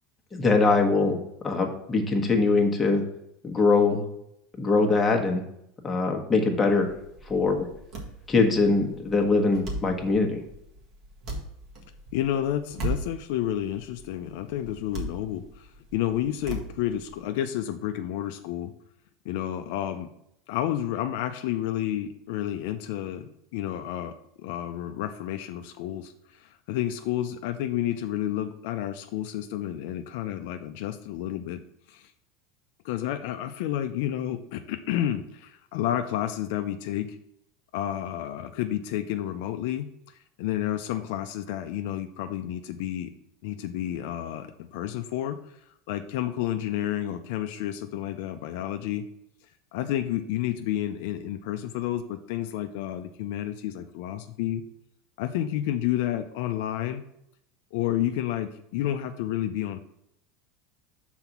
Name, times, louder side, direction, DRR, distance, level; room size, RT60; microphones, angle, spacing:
voice 1, 0.3-1.2 1.4-3.0 3.4-4.0 4.6-5.4 5.8-6.9 7.3-7.7 8.3-10.4, left 3 dB, 15° left, 1 dB, 1.2 m, -22 dB
sound 1, 6.8-17.3, right 1 dB, 50° right, 1.7 m, -39 dB
voice 2, 12.1-18.7 19.2-20.1 20.5-26.1 26.4-31.6 31.9-32.1 32.8-37.2 37.7-39.9 40.4-43.1 43.4-45.4 45.9-49.0 49.7-54.6 55.2-57.0 57.7-59.9, left 12 dB, 70° left, 7 dB, 0.5 m, -30 dB
5.8 x 4.0 x 5.9 m, 0.78 s
supercardioid pair, 125°, 0 cm